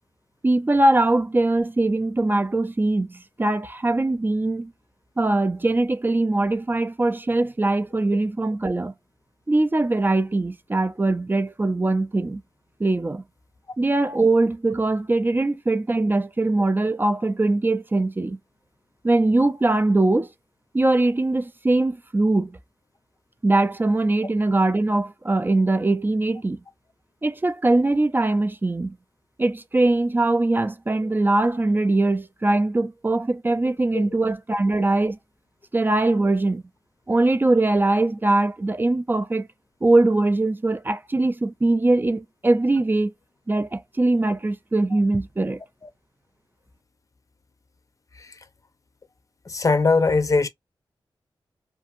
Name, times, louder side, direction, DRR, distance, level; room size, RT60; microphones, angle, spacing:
voice 1, 0.4-4.7 5.2-8.9 9.5-12.4 12.8-13.2 13.8-18.4 19.0-20.3 20.7-22.6 23.4-26.6 27.2-29.0 29.4-35.2 35.7-36.6 37.1-39.5 39.8-43.1 43.5-45.6, right 2 dB, 25° right, 0.4 m, -21 dB
voice 2, 49.5-50.5, left 3 dB, 40° left, 0.6 m, -21 dB
2.6 x 2.5 x 2.5 m
wide cardioid pair, 75°, 9 cm